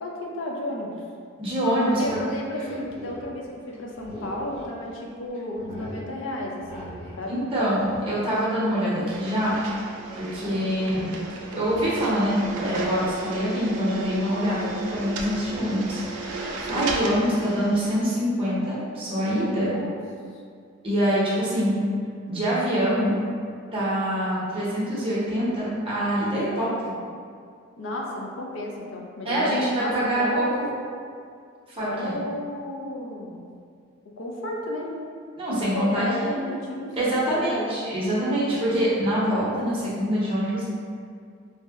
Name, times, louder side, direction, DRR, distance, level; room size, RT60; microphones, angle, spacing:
voice 1, 0.0-1.0 2.0-7.3 10.4-10.5 16.6-16.9 19.3-20.0 27.8-30.4 31.8-33.5 34.2-34.9 35.7-36.9 37.3-37.8, left 1 dB, 60° left, -1 dB, 0.4 m, -33 dB
voice 2, 1.4-2.2 7.3-9.6 10.1-11.1 11.5-19.7 20.8-21.8 22.3-23.2 23.7-26.7 29.2-30.7 31.7-32.1 35.4-36.4 36.9-40.6, equal, 25° right, -9 dB, 0.7 m, -25 dB
sound 1, 1.9-5.0 5.3-6.0 6.6-7.2 7.5-9.9 10.2-10.6 10.9-11.1 11.5-12.1 12.5-14.6 14.9-16.2 17.0-17.2, right 1 dB, 30° left, 0.9 m, -43 dB
sound 2, 9.1-18.0, right 3 dB, 90° right, 0.3 m, -35 dB
2.7 x 2.1 x 3.4 m, 2.2 s
head